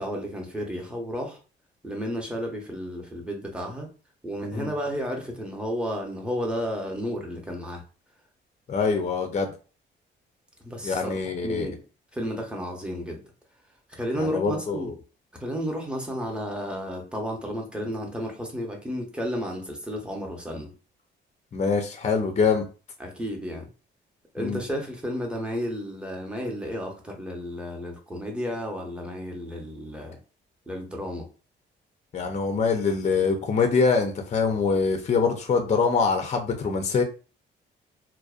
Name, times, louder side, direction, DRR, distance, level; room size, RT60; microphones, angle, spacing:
voice 1, 0.0-1.4 1.8-3.9 4.2-7.8 10.6-11.1 11.4-11.8 12.1-13.2 13.9-14.9 15.4-20.7 23.0-23.7 24.3-30.2 30.7-31.3, equal, 5° right, 0 dB, 0.8 m, -32 dB
voice 2, 8.7-9.5 10.8-11.7 14.1-14.9 21.5-22.6 24.4-24.6 32.1-37.0, left 5 dB, 35° left, 5 dB, 0.5 m, -24 dB
2.5 x 2.1 x 2.4 m, 0.35 s
cardioid pair, 90°, 20 cm